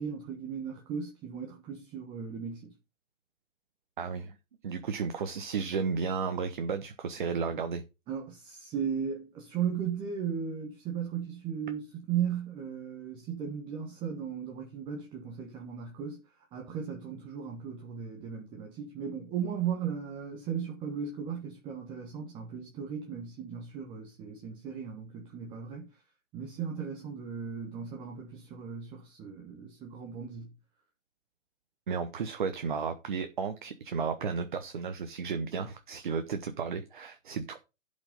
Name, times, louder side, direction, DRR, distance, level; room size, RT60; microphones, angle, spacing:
voice 1, 0.0-2.7 8.1-16.2 16.5-25.9 26.3-30.5, right 7 dB, 15° right, 1.3 m, -36 dB
voice 2, 4.0-4.3 4.6-7.8 31.9-37.6, right 5 dB, 40° right, 1.1 m, -33 dB
12.0 x 5.3 x 5.4 m
figure-of-eight pair, 135°, 39 cm